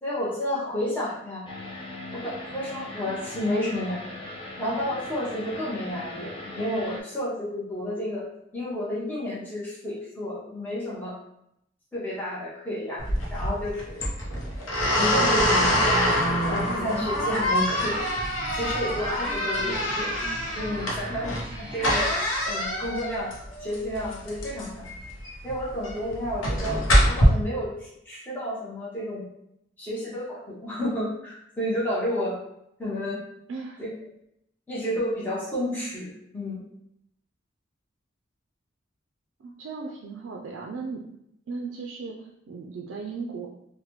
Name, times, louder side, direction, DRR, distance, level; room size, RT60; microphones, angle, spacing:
voice 1, 0.0-1.4 2.1-4.0 4.6-8.2 8.5-11.1 11.9-14.1 14.6-15.9 16.5-18.0 18.5-20.1 20.5-22.1 22.4-23.3 23.6-24.8 25.4-29.3 29.8-32.4 32.8-33.2 33.8-33.9 34.7-36.6, left 1 dB, 10° left, -8 dB, 0.9 m, -31 dB
sound 1, 1.5-7.0, left 2 dB, 25° left, 0.3 m, -39 dB
sound 2, 13.0-27.2, equal, 85° left, 0.7 m, -25 dB
Guitar, 16.2-22.0, right 1 dB, 25° right, 1.1 m, -43 dB
voice 2, 33.5-33.8 39.4-41.0 41.5-43.5, right 4 dB, 90° right, -1 dB, 0.4 m, -36 dB
3.1 x 2.1 x 3.0 m, 0.78 s
head